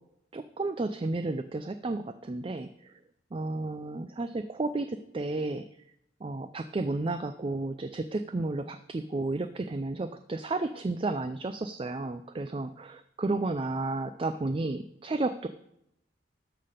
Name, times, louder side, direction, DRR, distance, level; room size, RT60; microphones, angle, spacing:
voice 1, 0.3-3.0 3.3-5.7 6.2-15.5, right 2 dB, 30° right, 10 dB, 0.4 m, -32 dB
13.0 x 5.7 x 5.1 m, 0.79 s
head